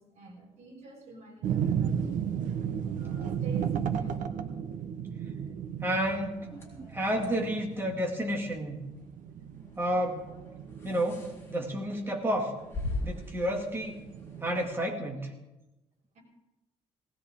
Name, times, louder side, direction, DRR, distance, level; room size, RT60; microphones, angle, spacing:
voice 1, 0.0-2.2 3.0-4.2 16.1-16.2, right 3 dB, 65° right, -2 dB, 6.9 m, -48 dB
sound 1, 1.4-14.7, right 8 dB, 90° right, 1.1 m, -34 dB
voice 2, 5.8-8.8 9.8-10.3 10.8-12.5 13.0-14.0 14.4-15.3, equal, 15° right, 0 dB, 2.3 m, -31 dB
sound 2, 6.4-14.7, left 2 dB, 20° left, 4.1 m, -43 dB
19.5 x 18.0 x 3.7 m, 1.0 s
cardioid pair, 170°, 13 cm